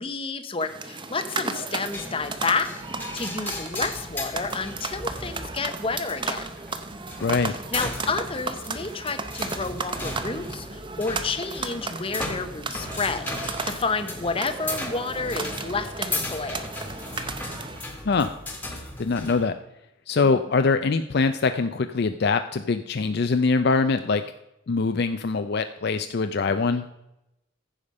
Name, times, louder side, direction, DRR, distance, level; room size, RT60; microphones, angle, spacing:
voice 1, 0.0-2.7 3.1-6.5 7.4-16.6, left 4 dB, 25° left, 9 dB, 0.7 m, -30 dB
sound 1, 0.6-17.9, right 4 dB, 25° right, 0.7 m, -34 dB
sound 2, 1.9-19.4, left 2 dB, 10° left, 1.4 m, -37 dB
voice 2, 7.2-7.5 18.0-18.3 19.0-19.5 20.1-24.2 24.7-26.8, left 4 dB, 50° left, 9 dB, 0.4 m, -23 dB
15.0 x 5.1 x 5.3 m, 0.88 s
head